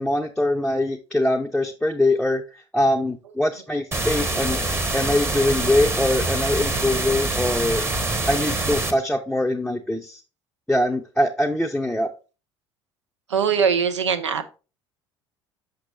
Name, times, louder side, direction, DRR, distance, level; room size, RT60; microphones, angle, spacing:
voice 1, 0.0-7.8 8.3-10.2 10.7-12.1, left 1 dB, 5° left, 0.6 m, -23 dB
sound 1, 3.9-8.9, right 2 dB, 15° right, 1.0 m, -25 dB
voice 2, 13.3-14.6, right 6 dB, 80° right, 0.6 m, -22 dB
6.1 x 5.9 x 3.0 m
figure-of-eight pair, 60°, 15 cm